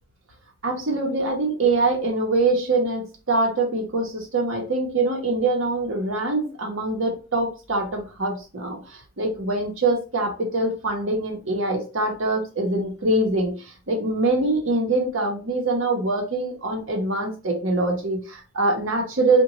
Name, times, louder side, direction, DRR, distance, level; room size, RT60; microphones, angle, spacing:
voice 1, 0.6-19.4, right 2 dB, 60° right, 1 dB, 0.9 m, -24 dB
3.6 x 2.2 x 2.9 m, 0.33 s
head